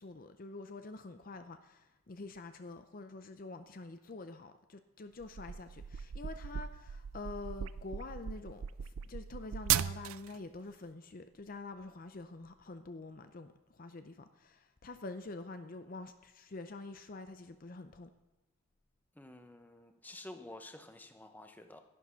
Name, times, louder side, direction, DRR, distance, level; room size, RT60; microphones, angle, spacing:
voice 1, 0.0-18.1, left 3 dB, 40° left, 0.6 m, -47 dB
sound 1, 5.2-10.4, right 10 dB, 85° right, 0.4 m, -37 dB
voice 2, 19.1-21.8, left 1 dB, 10° left, 0.8 m, -50 dB
11.0 x 10.5 x 5.7 m
head